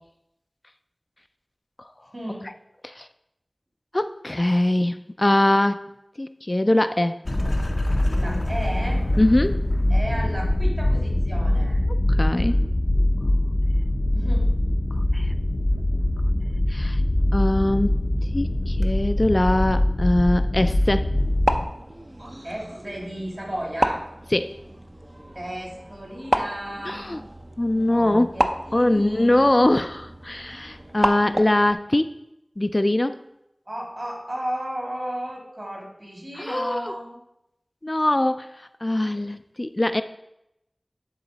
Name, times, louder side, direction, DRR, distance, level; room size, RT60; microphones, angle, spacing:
voice 1, 2.1-2.5 8.1-9.0 9.9-11.8 14.1-14.5 22.4-24.0 25.3-27.2 27.9-29.4 33.7-37.2, equal, 55° right, -3 dB, 3.0 m, -34 dB
voice 2, 3.9-5.8 6.2-7.2 9.2-9.6 11.9-12.6 15.1-15.3 16.7-17.0 17.3-18.0 18.3-21.1 24.3-24.6 26.9-27.2 27.6-28.3 28.7-32.2 32.6-33.2 36.4-36.9 37.8-40.0, left 1 dB, 45° left, 10 dB, 0.3 m, -22 dB
sound 1, 7.3-21.6, left 1 dB, 80° left, 0.6 m, -23 dB
sound 2, 21.2-31.7, right 1 dB, 35° right, 0.6 m, -31 dB
10.5 x 3.8 x 4.0 m, 0.84 s
wide cardioid pair, 40°, 0 cm